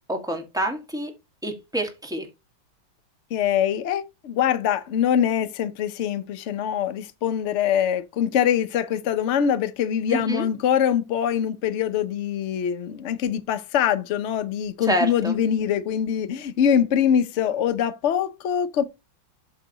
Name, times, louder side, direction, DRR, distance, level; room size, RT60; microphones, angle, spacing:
voice 1, 0.1-1.1 1.4-2.3 10.1-10.4 14.9-15.3, right 1 dB, ahead, 1.6 m, -27 dB
voice 2, 3.3-18.8, left 9 dB, 60° left, 0.7 m, -23 dB
8.3 x 6.1 x 3.0 m
omnidirectional pair, 2.1 m